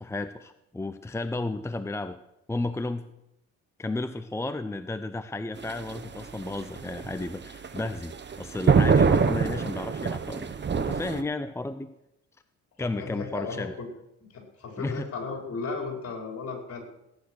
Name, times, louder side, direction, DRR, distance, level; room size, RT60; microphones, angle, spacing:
voice 1, 0.0-2.2 2.5-3.1 3.8-11.9 12.8-13.7 14.8-15.1, left 2 dB, 10° left, 10 dB, 0.7 m, -33 dB
sound 1, 5.6-11.2, right 5 dB, 35° right, 1.2 m, -25 dB
voice 2, 12.8-13.9 14.3-16.8, left 4 dB, 50° left, 2 dB, 5.5 m, -35 dB
17.0 x 10.0 x 6.5 m, 0.87 s
cardioid pair, 90°, 30 cm